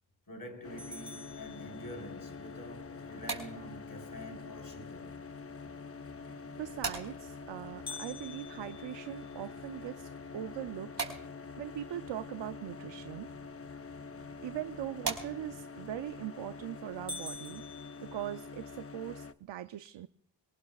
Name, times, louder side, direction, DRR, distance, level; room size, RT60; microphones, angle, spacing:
voice 1, 0.3-5.1, equal, 50° left, 4.0 m, -47 dB
sound 1, 0.6-19.3, left 5 dB, 30° left, 0.6 m, -46 dB
sound 2, 0.8-2.4 7.9-10.0 10.5-10.6 11.1-11.2 11.9-12.2 15.8-16.2 16.6-16.7 17.1-18.8, left 2 dB, 10° left, 1.7 m, -47 dB
sound 3, 2.9-15.8, right 4 dB, 55° right, 4.5 m, -45 dB
voice 2, 6.2-10.9 11.6-13.3 14.4-17.6 18.0-20.1, right 12 dB, 80° right, 0.6 m, -41 dB
26.0 x 19.0 x 2.4 m
cardioid pair, 55°, 44 cm